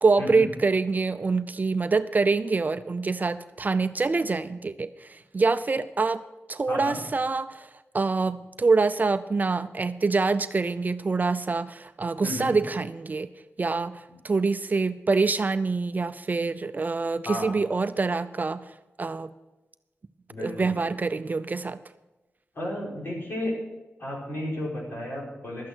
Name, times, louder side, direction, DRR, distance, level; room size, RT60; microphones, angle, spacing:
voice 1, 0.0-6.2 6.5-7.7 7.9-13.3 13.6-18.7 19.0-19.3 20.4-21.8, right 4 dB, 40° right, 12 dB, 0.5 m, -25 dB
voice 2, 6.7-7.0 12.2-12.5 14.1-14.2 17.2-17.5 20.3-20.7 22.5-23.5 24.0-25.7, left 1 dB, 50° left, -4 dB, 5.1 m, -33 dB
12.0 x 8.6 x 6.2 m, 1.1 s
wide cardioid pair, 85°, 5 cm